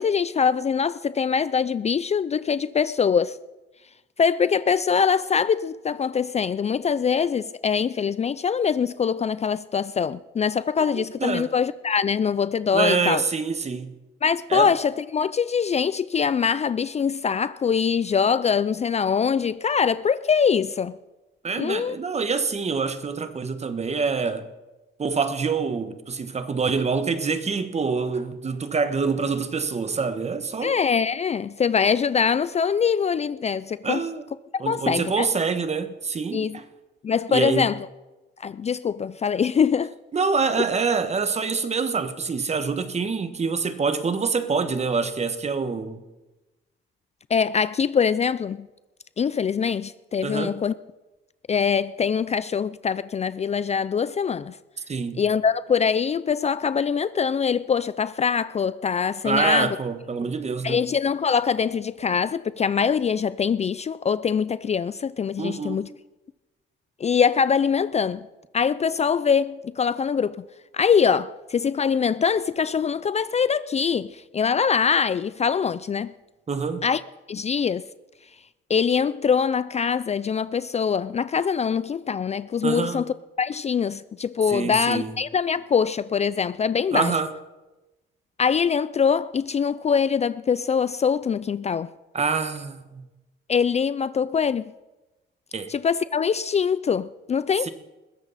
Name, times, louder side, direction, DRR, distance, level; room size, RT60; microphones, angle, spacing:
voice 1, 0.0-3.4 4.2-13.2 14.2-20.9 21.6-22.0 30.6-34.1 34.7-35.3 36.3-36.6 37.0-37.9 38.4-39.9 47.3-48.7 49.2-50.7 51.5-54.5 55.2-59.8 60.6-65.9 67.0-68.3 68.5-70.4 70.7-76.1 76.8-77.0 77.3-77.8 78.7-83.0 83.4-87.1 88.4-91.9 93.5-94.7 95.7-97.7, left 6 dB, 35° left, 0.4 m, -23 dB
voice 2, 10.9-11.5 12.7-13.9 14.5-14.7 21.4-24.4 25.0-30.7 33.8-34.2 34.6-36.6 37.3-37.7 40.1-46.0 50.2-50.5 54.9-55.2 59.2-60.8 65.4-65.8 76.5-76.8 82.6-83.0 84.5-85.1 86.9-87.3 92.1-93.0 95.5-95.7 97.6-97.7, right 5 dB, 35° right, 1.4 m, -26 dB
20.5 x 15.0 x 4.2 m
cardioid pair, 90°, 20 cm